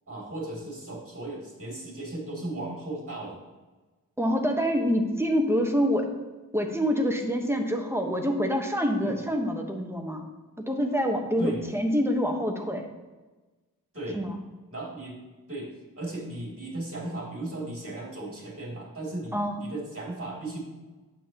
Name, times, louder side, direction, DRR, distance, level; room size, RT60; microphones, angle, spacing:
voice 1, 0.1-3.4 9.0-9.2 11.4-11.6 13.9-14.2 14.7-15.2 15.5-20.6, right 2 dB, 40° right, -3 dB, 2.8 m, -36 dB
voice 2, 4.2-6.1 6.5-10.3 10.6-12.9 14.1-14.4 19.3-19.6, equal, 5° right, 2 dB, 1.1 m, -26 dB
9.1 x 7.5 x 3.0 m, 1.2 s
wide cardioid pair, 65°, 34 cm